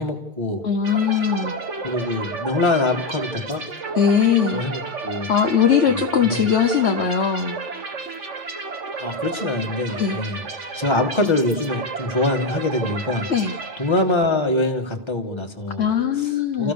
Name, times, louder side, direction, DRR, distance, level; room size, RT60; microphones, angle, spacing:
voice 1, 0.0-0.7 1.8-3.7 4.5-5.3 5.9-6.5 9.0-10.5 10.8-13.3 13.8-16.7, left 2 dB, 15° left, 2 dB, 1.8 m, -24 dB
voice 2, 0.6-1.6 4.0-4.6 5.3-7.6 10.0-10.2 13.3-13.5 15.8-16.7, left 7 dB, 45° left, 5 dB, 1.1 m, -20 dB
sound 1, 0.8-14.4, right 4 dB, 45° right, 1.7 m, -32 dB
29.0 x 15.5 x 6.8 m, 0.89 s
omnidirectional pair, 1.9 m